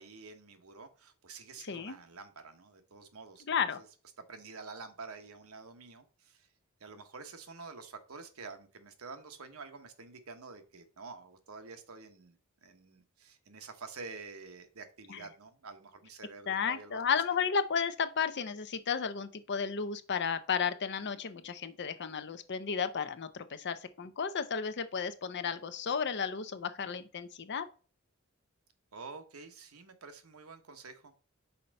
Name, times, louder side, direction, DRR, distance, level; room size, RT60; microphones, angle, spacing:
voice 1, 0.0-3.4 3.8-3.9 4.3-6.5 6.8-17.0 28.9-31.1, right 4 dB, 80° right, 1.1 m, -48 dB
voice 2, 3.5-3.8 15.1-15.2 16.5-27.7, left 6 dB, 55° left, 0.7 m, -33 dB
5.6 x 4.5 x 5.3 m
head